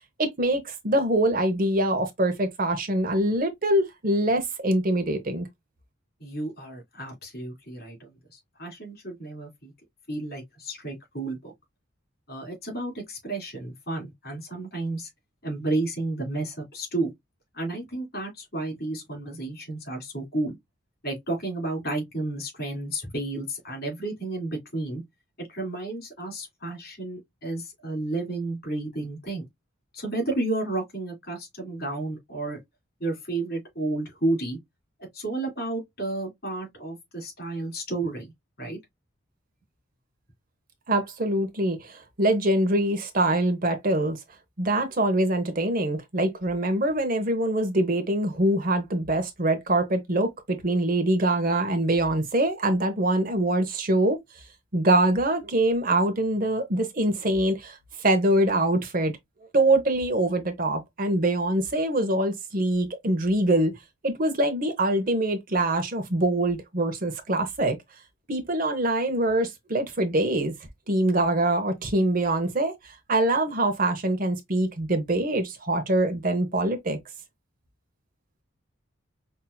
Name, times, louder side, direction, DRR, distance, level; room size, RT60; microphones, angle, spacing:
voice 1, 0.2-5.5 40.9-44.2 44.6-54.2 54.7-59.1 59.5-63.7 64.0-67.8 68.3-70.5 70.9-77.0, right 1 dB, 40° right, 0.8 m, -24 dB
voice 2, 6.2-9.7 10.1-11.5 12.3-15.1 15.4-17.1 17.5-20.5 21.0-25.0 25.4-29.4 29.9-32.6 33.0-34.6 35.1-38.3 38.6-38.8, right 2 dB, 45° left, 3.1 m, -32 dB
5.6 x 2.7 x 2.2 m
head